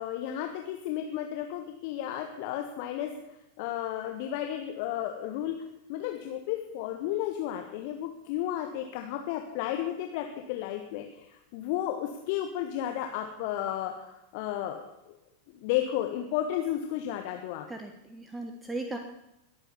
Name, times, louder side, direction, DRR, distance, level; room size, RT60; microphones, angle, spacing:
voice 1, 0.0-3.1 3.6-5.5 5.9-15.2 15.5-17.6, left 11 dB, 45° left, 4 dB, 1.4 m, -33 dB
voice 2, 17.7-19.0, right 2 dB, 10° right, 5 dB, 1.4 m, -37 dB
21.5 x 8.9 x 7.1 m, 0.89 s
figure-of-eight pair, 90°, 0 cm